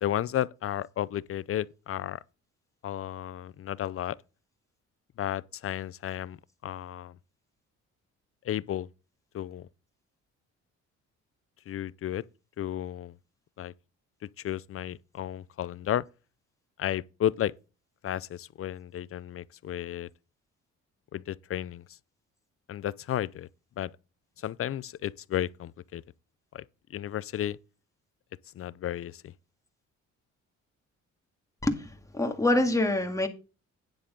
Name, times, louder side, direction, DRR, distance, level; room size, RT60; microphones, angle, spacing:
voice 1, 0.0-2.2 2.8-4.2 5.2-6.4 6.6-7.2 8.4-8.9 9.3-9.7 11.7-12.2 12.6-13.1 13.6-13.7 14.4-16.1 16.8-17.5 18.0-20.1 21.1-21.8 22.7-23.5 23.8-23.9 24.4-26.0 26.5-26.6 26.9-27.6 28.5-29.3, left 11 dB, 50° left, 0.5 m, -33 dB
voice 2, 31.6-33.3, left 1 dB, 10° left, 2.0 m, -26 dB
9.9 x 8.4 x 3.8 m
cardioid pair, 90°, 30 cm